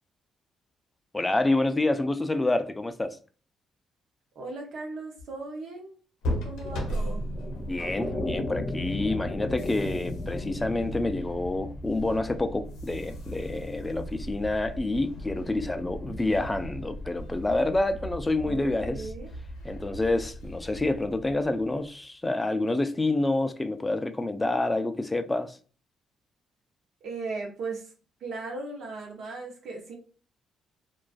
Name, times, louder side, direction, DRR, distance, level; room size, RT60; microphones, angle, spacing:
voice 1, 1.1-3.2 7.6-19.1 19.6-25.6, left 2 dB, 15° left, 0.3 m, -28 dB
voice 2, 4.4-6.0 6.4-7.2 18.3-19.3 27.0-27.9 28.2-30.0, right 3 dB, 70° right, 0.7 m, -37 dB
sound 1, 6.2-21.9, equal, 85° left, 0.5 m, -37 dB
sound 2, 6.6-16.9, left 2 dB, 40° left, 0.8 m, -38 dB
2.3 x 2.3 x 2.3 m
cardioid pair, 90°, 0 cm